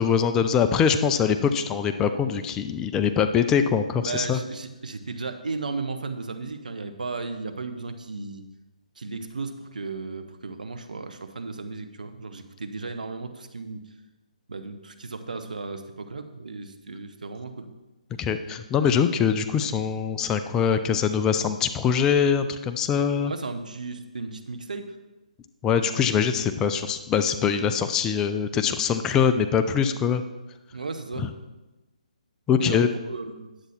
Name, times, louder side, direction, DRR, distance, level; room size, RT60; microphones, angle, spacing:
voice 1, 0.0-4.4 18.2-23.3 25.6-30.2 31.2-31.3 32.5-32.9, left 7 dB, 15° left, 8 dB, 0.4 m, -23 dB
voice 2, 4.0-8.4 9.0-13.8 14.5-17.7 23.2-24.9 30.7-31.3 32.6-33.5, right 3 dB, 75° right, 8 dB, 1.1 m, -35 dB
10.0 x 8.0 x 4.3 m, 1.1 s
figure-of-eight pair, 150°, 4 cm